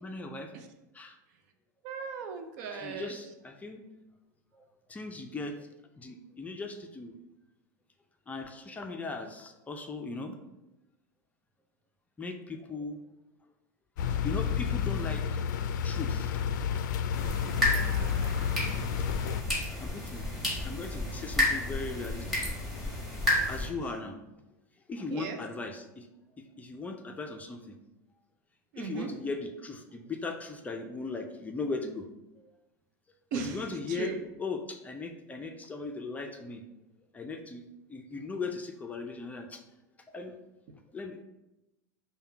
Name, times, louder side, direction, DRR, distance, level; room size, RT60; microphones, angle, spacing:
voice 1, 0.0-0.5 0.9-1.1 2.7-3.8 4.9-5.7 6.0-7.1 8.3-10.4 12.2-13.0 14.2-15.4 15.8-16.3 19.8-20.2 20.6-22.5 23.5-24.2 24.9-26.1 26.6-27.7 28.8-32.1 33.3-36.6 37.1-37.6 37.9-39.6 40.1-40.3 40.9-41.2, left 3 dB, 15° left, 4 dB, 0.4 m, -38 dB
voice 2, 1.8-3.1 17.5-18.6 25.1-25.4 28.7-29.1 33.3-33.6 33.9-34.2, right 5 dB, 60° right, 6 dB, 0.6 m, -38 dB
sound 1, 14.0-19.4, left 7 dB, 75° left, 0.4 m, -30 dB
sound 2, 17.1-23.7, left 1 dB, ahead, 1.7 m, -31 dB
5.4 x 2.2 x 4.4 m, 0.97 s
hypercardioid pair, 115°, 10 cm